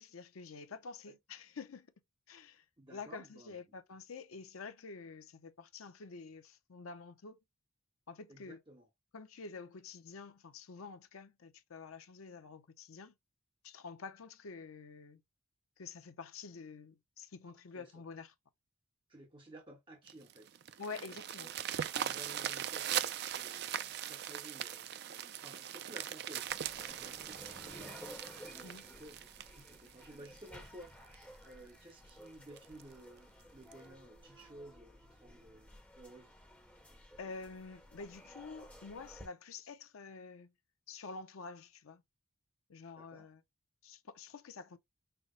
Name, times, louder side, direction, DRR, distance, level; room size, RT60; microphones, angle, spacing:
voice 1, 0.0-1.9 2.3-7.4 8.1-8.6 9.1-13.1 13.6-15.2 15.8-18.3 20.8-21.5 28.6-28.8 37.2-40.5 40.9-42.0 42.7-43.4 43.8-44.8, left 4 dB, 80° left, 0.6 m, -48 dB
voice 2, 2.8-3.6 8.3-8.9 17.7-18.0 19.1-20.6 21.4-36.3 43.0-43.3, right 1 dB, 25° right, 0.9 m, -55 dB
sound 1, 20.1-30.6 31.1-31.2 31.7-31.8 32.1-32.2 32.6-32.8 33.7-33.8, right 10 dB, 50° right, 0.3 m, -40 dB
sound 2, 26.5-39.3, equal, 5° left, 0.9 m, -55 dB
5.6 x 2.0 x 3.7 m
head